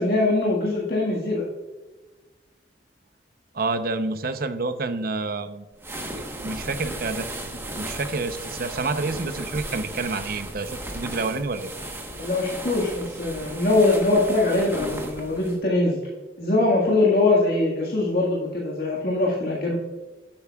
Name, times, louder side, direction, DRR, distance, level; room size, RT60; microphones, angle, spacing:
voice 1, 0.0-1.4 12.2-16.0 16.4-19.7, left 2 dB, 60° left, -4 dB, 1.7 m, -22 dB
voice 2, 3.5-5.7 6.1-7.3 7.8-11.7, right 3 dB, 55° right, 9 dB, 0.8 m, -28 dB
sound 1, 5.8-15.6, right 1 dB, 15° right, 1.2 m, -35 dB
10.5 x 8.7 x 2.4 m, 1.2 s
head